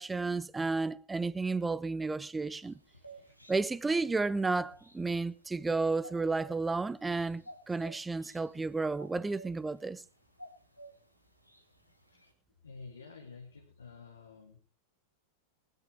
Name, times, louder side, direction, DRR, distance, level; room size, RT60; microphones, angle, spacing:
voice 1, 0.0-2.8 3.5-10.0, right 3 dB, 10° right, 0.6 m, -32 dB
sound 1, 2.5-12.3, right 1 dB, 90° left, 2.6 m, -55 dB
voice 2, 12.6-14.6, left 4 dB, 75° left, 2.2 m, -50 dB
19.5 x 13.0 x 3.5 m
figure-of-eight pair, 90°, 0 cm